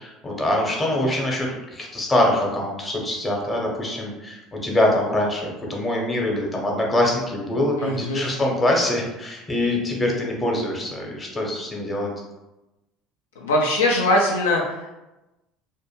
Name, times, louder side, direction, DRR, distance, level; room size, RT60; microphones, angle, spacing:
voice 1, 0.0-12.1, left 1 dB, 25° left, -1 dB, 0.8 m, -24 dB
voice 2, 7.8-8.5 13.4-14.9, left 1 dB, 80° left, -1 dB, 0.3 m, -22 dB
2.5 x 2.2 x 2.9 m, 1.0 s
hypercardioid pair, 70°, 0 cm